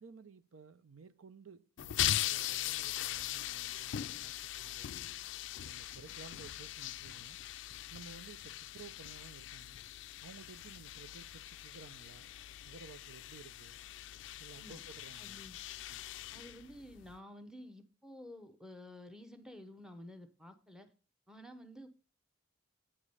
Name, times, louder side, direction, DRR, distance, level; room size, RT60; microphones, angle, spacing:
voice 1, 0.0-5.2 5.6-7.4 7.9-9.8 10.2-12.3 12.6-13.8 14.4-15.5, right 5 dB, 80° right, 0.6 m, -55 dB
sound 1, 1.8-17.2, left 13 dB, 60° left, 0.3 m, -40 dB
voice 2, 15.2-15.5 16.3-20.9 21.3-21.9, left 1 dB, 5° right, 0.8 m, -51 dB
8.7 x 5.0 x 5.4 m
head